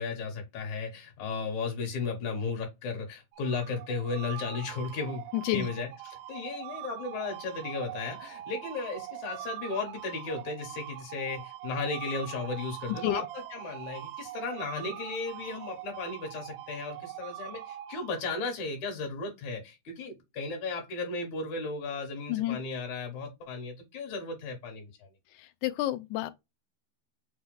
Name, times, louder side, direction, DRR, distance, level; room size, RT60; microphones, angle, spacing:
voice 1, 0.0-5.2 5.5-24.9, left 4 dB, 65° left, 3.1 m, -35 dB
sound 1, 3.3-18.6, right 13 dB, 85° right, 2.2 m, -42 dB
voice 2, 5.3-5.7 12.9-13.3 22.3-22.6 25.4-26.3, left 14 dB, 80° left, 1.9 m, -30 dB
6.3 x 2.4 x 3.4 m
omnidirectional pair, 3.8 m